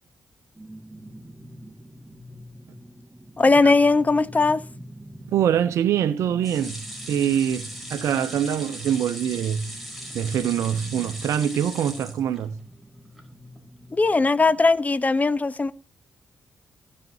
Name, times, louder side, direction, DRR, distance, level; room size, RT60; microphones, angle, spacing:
sound 1, 0.5-14.7, equal, 20° right, 1.9 m, -45 dB
voice 1, 3.4-4.6 13.9-15.7, left 3 dB, 30° left, 1.0 m, -19 dB
voice 2, 5.3-9.7 10.1-12.6, right 9 dB, 75° right, 0.9 m, -24 dB
sound 2, 6.4-12.7 13.2-13.3 13.6-13.7, equal, ahead, 4.7 m, -39 dB
15.5 x 6.8 x 2.8 m
supercardioid pair, 45°, 5 cm